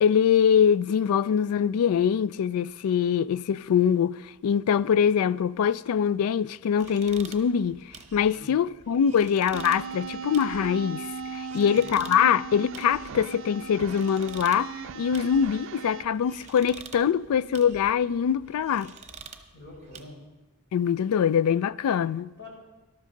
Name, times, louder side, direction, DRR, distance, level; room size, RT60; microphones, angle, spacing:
voice 1, 0.0-7.8 8.1-18.9 20.7-22.3, left 8 dB, 80° left, 0.3 m, -23 dB
sound 1, 6.8-20.0, right 5 dB, 30° right, 0.9 m, -48 dB
sound 2, 9.5-16.0, right 6 dB, 60° right, 0.5 m, -38 dB
voice 2, 11.5-11.8 19.5-20.2 22.4-22.5, left 2 dB, 55° left, 4.1 m, -45 dB
13.5 x 12.5 x 3.8 m
head